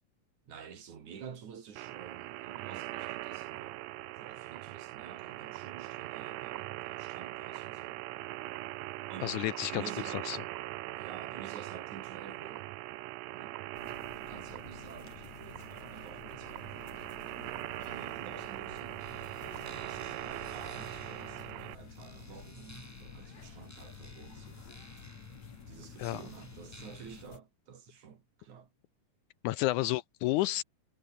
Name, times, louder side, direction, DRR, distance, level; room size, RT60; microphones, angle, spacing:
voice 1, 0.5-3.9 4.2-8.0 9.1-9.4 9.7-10.2 11.0-12.7 13.3-13.6 14.2-17.0 17.9-19.2 19.7-24.7 25.7-28.7 29.8-30.0, right 7 dB, 65° right, 4.0 m, -50 dB
sound 1, 1.8-21.8, right 17 dB, 90° right, 1.5 m, -41 dB
voice 2, 9.2-10.4 26.0-26.2 29.4-30.6, left 17 dB, 80° left, 1.9 m, -31 dB
sound 2, 13.7-27.4, left 6 dB, 55° left, 4.5 m, -51 dB
sound 3, 19.0-27.2, left 1 dB, 5° left, 3.5 m, -55 dB
omnidirectional pair, 3.8 m